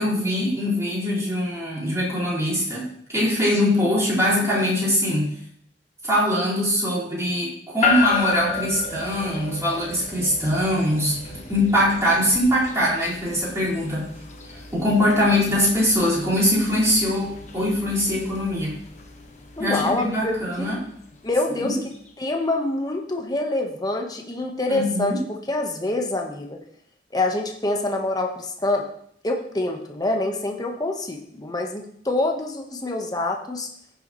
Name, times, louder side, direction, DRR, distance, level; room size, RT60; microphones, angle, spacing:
voice 1, 0.0-5.3 6.0-14.1 14.7-18.8 19.6-20.8 21.6-21.8 24.7-25.2, left 1 dB, 15° right, -9 dB, 4.4 m, -22 dB
sound 1, 7.8-22.1, left 6 dB, 40° left, 1.4 m, -33 dB
voice 2, 19.6-20.7 21.2-26.6 27.1-28.9 29.2-33.7, left 2 dB, 20° left, 2 dB, 1.1 m, -26 dB
15.5 x 7.0 x 3.1 m, 0.67 s
head